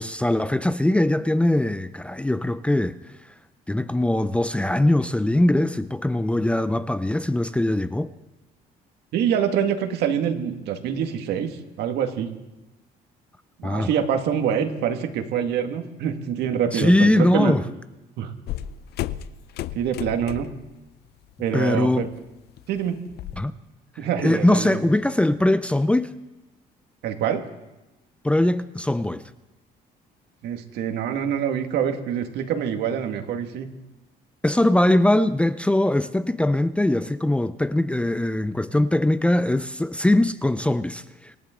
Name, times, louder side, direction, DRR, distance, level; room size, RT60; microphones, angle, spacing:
voice 1, 0.0-3.0 3.7-8.1 13.6-13.9 16.7-17.6 21.5-22.1 23.4-23.5 24.2-26.1 28.2-29.2 34.4-41.3, left 1 dB, 5° left, 13 dB, 0.5 m, -21 dB
voice 2, 9.1-12.3 13.6-17.6 18.2-18.3 19.7-20.5 21.4-22.1 22.7-23.0 24.0-24.8 27.0-27.5 30.4-33.7, right 8 dB, 75° right, 5 dB, 2.0 m, -25 dB
sound 1, 18.5-20.7 21.1-21.4 21.7-23.4, left 12 dB, 70° left, 0.6 m, -34 dB
26.5 x 14.0 x 3.8 m, 1.0 s
cardioid pair, 110°, 17 cm